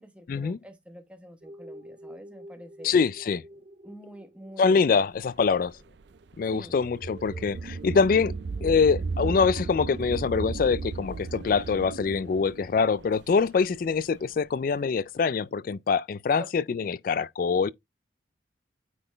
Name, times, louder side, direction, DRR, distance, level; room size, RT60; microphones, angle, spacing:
voice 1, 0.0-2.9 3.8-5.0 6.5-6.8, equal, 5° right, 1.1 m, -47 dB
sound 1, 1.4-14.6, right 1 dB, 30° right, 0.7 m, -51 dB
voice 2, 2.8-3.4 4.6-5.7 6.4-8.3 8.6-17.7, left 5 dB, 45° left, 0.3 m, -24 dB
sound 2, 5.2-14.2, right 4 dB, 70° right, 0.4 m, -36 dB
9.1 x 4.0 x 3.2 m
head